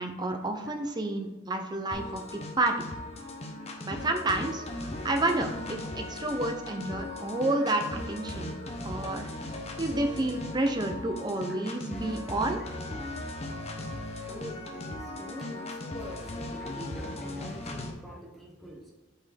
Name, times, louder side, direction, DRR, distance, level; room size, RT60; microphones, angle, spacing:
voice 1, 0.0-2.9 3.8-8.5 8.8-9.3 9.8-12.6, right 2 dB, 20° right, 5 dB, 0.7 m, -30 dB
sound 1, 1.9-17.9, left 1 dB, 35° left, 0.9 m, -38 dB
voice 2, 11.2-12.1 14.3-18.8, equal, ahead, -2 dB, 1.3 m, -45 dB
7.9 x 4.6 x 3.4 m, 1.2 s
head